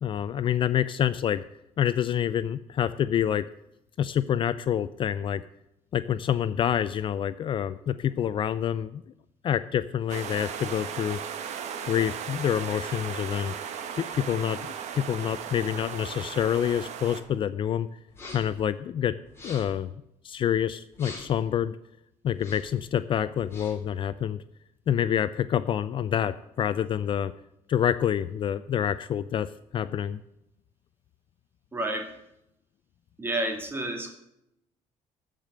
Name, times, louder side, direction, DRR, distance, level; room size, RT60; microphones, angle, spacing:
voice 1, 0.0-1.4 1.8-3.5 4.0-5.4 5.9-9.0 9.4-11.2 11.9-13.5 14.0-17.9 18.3-19.1 19.4-19.9 20.2-21.8 22.2-24.4 24.9-27.3 27.7-30.2, left 9 dB, 40° left, 13 dB, 0.4 m, -27 dB
sound 1, 10.1-17.2, right 8 dB, 65° right, 1.4 m, -36 dB
sound 2, 18.1-18.6 19.2-19.8 20.9-21.5 22.3-22.8 23.3-23.9, left 2 dB, 20° left, 3.8 m, -45 dB
voice 2, 31.7-32.1 33.2-34.1, right 1 dB, 20° right, 4 dB, 2.3 m, -30 dB
14.0 x 5.1 x 7.6 m, 0.82 s
cardioid pair, 135°, 13 cm